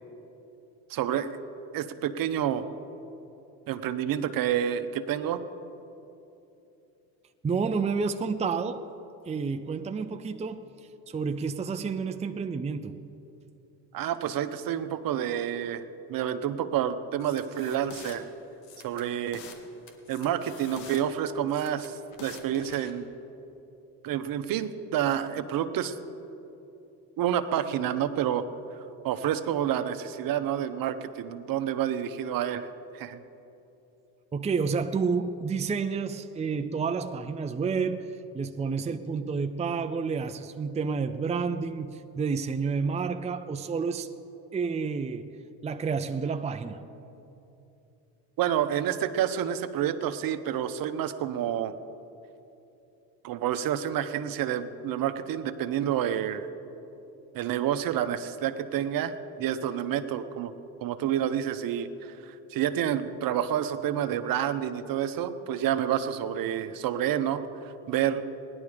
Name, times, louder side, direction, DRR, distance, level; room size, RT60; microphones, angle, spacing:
voice 1, 0.9-1.3 1.7-2.7 3.7-5.4 13.9-15.8 16.1-18.2 18.8-19.4 20.1-23.1 24.0-26.0 27.2-28.4 29.0-32.7 32.9-33.2 48.4-51.7 53.2-56.5 57.3-60.5 60.8-68.2, right 10 dB, 55° right, 0.9 m, -29 dB
voice 2, 7.4-8.9 9.2-10.7 11.1-13.0 34.3-44.1 44.5-46.9, right 5 dB, 15° right, 0.6 m, -30 dB
sound 1, 17.2-18.2 18.6-19.6 19.9-21.0 21.5-22.9, left 6 dB, 80° left, 1.7 m, -46 dB
17.5 x 11.0 x 5.0 m
supercardioid pair, 80°, 41 cm